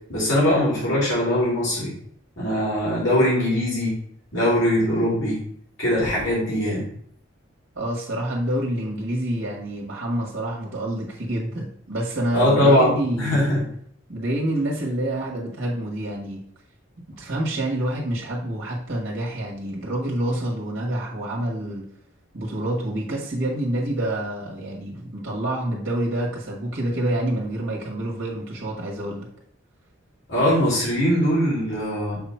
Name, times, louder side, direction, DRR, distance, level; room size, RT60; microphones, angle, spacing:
voice 1, 0.1-1.9 2.4-4.0 4.3-5.4 5.8-6.8 12.3-13.6 30.3-32.2, left 1 dB, 65° left, -6 dB, 2.7 m, -21 dB
voice 2, 7.8-13.4 14.1-16.4 17.2-21.9 22.3-29.3, right 1 dB, 70° right, -3 dB, 1.7 m, -27 dB
6.7 x 3.0 x 5.7 m, 0.63 s
head